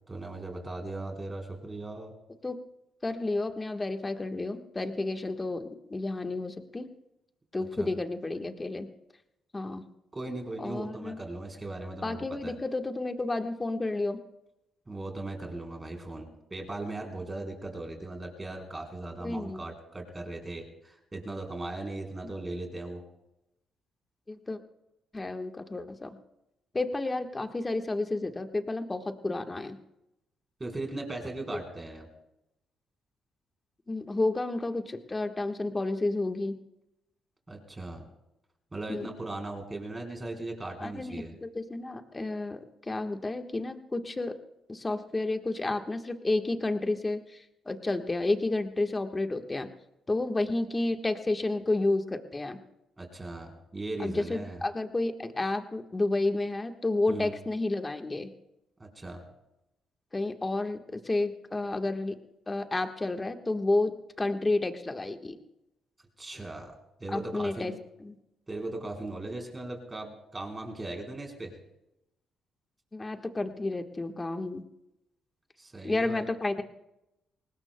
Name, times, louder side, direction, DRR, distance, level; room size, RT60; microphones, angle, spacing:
voice 1, 0.1-2.1 7.8-7.9 10.1-12.5 14.9-23.0 30.6-32.1 37.5-38.0 38.7-41.3 53.0-54.6 57.1-57.3 58.8-59.2 66.2-66.7 67.0-67.8 68.5-71.6 75.6-76.3, right 2 dB, 20° right, 2 dB, 4.1 m, -38 dB
voice 2, 3.0-6.9 7.5-8.9 9.5-9.8 10.6-11.2 12.0-14.2 19.2-19.6 24.3-24.6 25.1-26.1 26.7-29.8 33.9-36.6 38.9-39.1 40.8-44.3 44.7-49.7 50.1-52.6 54.0-58.3 60.1-62.1 62.5-65.4 67.1-67.7 68.0-68.2 72.9-74.6 75.8-76.6, left 2 dB, 20° left, 6 dB, 1.3 m, -31 dB
24.0 x 19.5 x 2.2 m, 0.90 s
cardioid pair, 90°, 0 cm